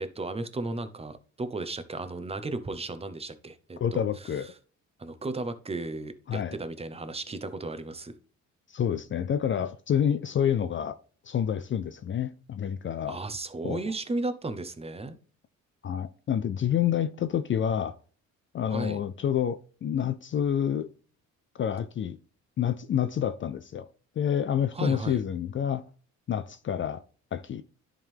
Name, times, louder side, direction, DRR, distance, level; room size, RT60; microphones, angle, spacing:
voice 1, 0.0-4.3 5.0-8.1 13.1-15.2 18.7-19.0 24.7-25.2, right 2 dB, 20° right, 0.9 m, -35 dB
voice 2, 3.8-4.5 6.3-6.5 8.7-11.0 11.2-13.2 13.6-13.8 15.8-18.0 18.5-20.9 21.6-22.2 22.6-23.9 24.2-25.8 26.3-27.0 27.3-27.6, left 9 dB, 40° left, 0.5 m, -28 dB
10.5 x 3.7 x 3.4 m
cardioid pair, 90°, 30 cm